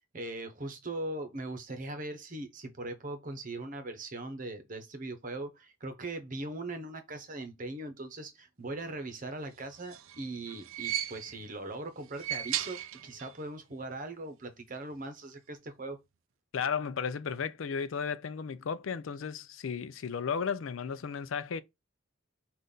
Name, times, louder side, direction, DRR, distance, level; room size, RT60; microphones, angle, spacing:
voice 1, 0.0-16.0, right 2 dB, 40° right, 0.9 m, -40 dB
sound 1, 9.6-11.5 12.0-13.4 13.7-13.8 14.9-15.0, right 11 dB, 85° right, 0.4 m, -37 dB
voice 2, 16.5-21.6, left 6 dB, 85° left, 0.4 m, -34 dB
5.5 x 2.5 x 3.8 m
head